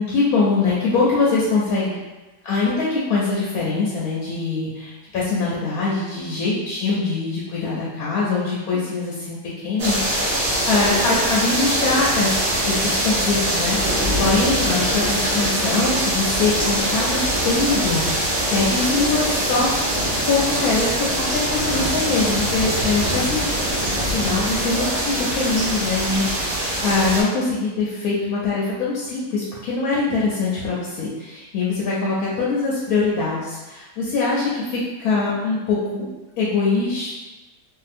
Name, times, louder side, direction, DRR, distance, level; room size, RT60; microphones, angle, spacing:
voice 1, 0.0-1.9 2.4-19.7 20.2-23.4 24.0-36.1 36.4-37.1, left 3 dB, 70° left, -6 dB, 0.9 m, -23 dB
sound 1, 9.8-27.2, right 1 dB, 50° right, 1.0 m, -23 dB
2.7 x 2.4 x 2.5 m, 1.1 s
omnidirectional pair, 1.9 m